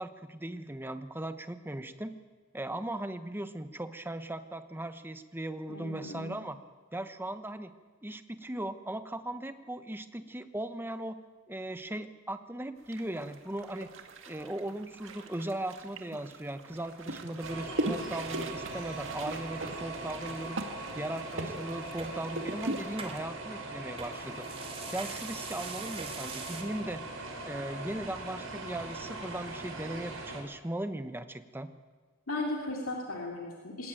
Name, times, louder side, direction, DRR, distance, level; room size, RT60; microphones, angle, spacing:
voice 1, 0.0-2.1 2.5-6.6 6.9-7.7 8.0-11.2 11.5-13.9 14.3-20.7 20.9-24.5 24.9-27.0 27.4-31.7, right 1 dB, 10° right, 9 dB, 1.0 m, -38 dB
voice 2, 5.7-6.3 32.3-33.9, left 2 dB, 70° left, -1 dB, 3.0 m, -36 dB
sound 1, 12.9-23.2, right 1 dB, 60° right, 2.0 m, -40 dB
sound 2, 17.4-30.4, right 2 dB, 80° right, 5.0 m, -41 dB
sound 3, 22.0-22.1 23.0-23.2 24.0-26.6, right 5 dB, 30° right, 2.7 m, -42 dB
21.5 x 18.0 x 9.1 m, 1.4 s
head